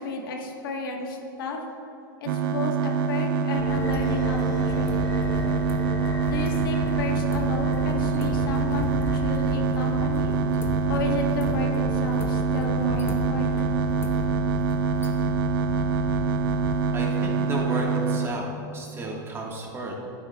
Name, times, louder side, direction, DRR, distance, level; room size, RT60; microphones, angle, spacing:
voice 1, 0.0-1.6 2.2-5.2 6.2-10.3 10.9-13.7, left 2 dB, 80° left, 2 dB, 1.2 m, -33 dB
sound 1, 2.3-18.3, right 5 dB, 80° right, 0.5 m, -25 dB
sound 2, 3.5-16.9, left 2 dB, 20° left, 0.8 m, -34 dB
sound 3, 4.0-9.6, left 1 dB, 60° right, 1.6 m, -44 dB
voice 2, 16.9-19.9, right 2 dB, 20° right, -1 dB, 1.4 m, -33 dB
11.5 x 9.3 x 2.2 m, 2.7 s
supercardioid pair, 125°, 11 cm